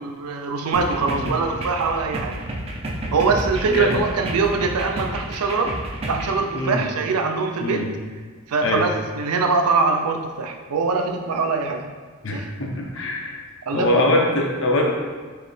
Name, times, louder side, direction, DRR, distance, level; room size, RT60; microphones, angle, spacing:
voice 1, 0.0-2.4 3.1-5.7 6.1-7.9 8.5-11.8 12.3-12.5 13.7-14.1, right 4 dB, 85° right, 4 dB, 0.5 m, -23 dB
sound 1, 0.7-6.4, right 1 dB, 25° right, 0.4 m, -30 dB
voice 2, 1.0-1.4 3.7-3.9 6.5-6.8 7.6-7.9 8.6-8.8 12.2-13.4 13.7-14.9, left 1 dB, 60° left, 0 dB, 0.7 m, -23 dB
4.7 x 3.0 x 3.2 m, 1.5 s
head